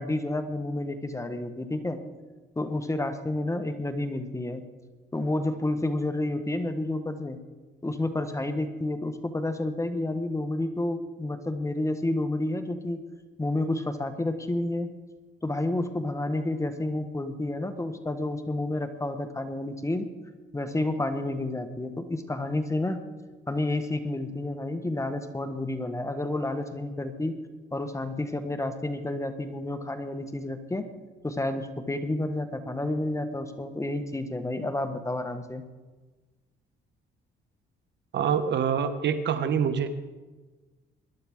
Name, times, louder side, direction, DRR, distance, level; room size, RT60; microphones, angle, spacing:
voice 1, 0.0-2.0 2.6-4.6 5.1-7.4 7.8-13.0 13.4-14.9 15.4-20.1 20.5-23.0 23.5-27.4 27.7-30.8 31.2-35.6, left 2 dB, 15° left, 8 dB, 1.2 m, -30 dB
voice 2, 38.1-39.9, right 7 dB, 65° right, 10 dB, 1.1 m, -25 dB
21.0 x 11.5 x 3.6 m, 1.3 s
cardioid pair, 90°, 20 cm